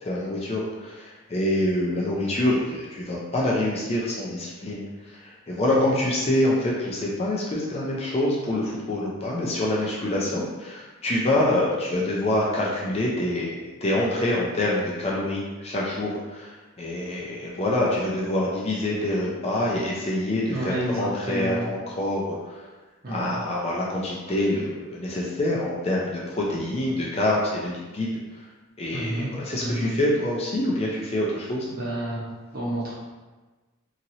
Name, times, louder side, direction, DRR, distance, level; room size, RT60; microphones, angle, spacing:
voice 1, 0.0-4.8 5.1-16.5 16.8-22.6 23.1-28.1 28.8-31.7, left 1 dB, 30° left, -4 dB, 0.4 m, -26 dB
voice 2, 5.7-6.0 9.8-9.9 20.5-21.7 23.0-23.4 28.9-29.9 31.7-32.2 32.5-33.0, right 1 dB, 45° right, -7 dB, 0.9 m, -30 dB
2.9 x 2.8 x 2.6 m, 1.2 s
head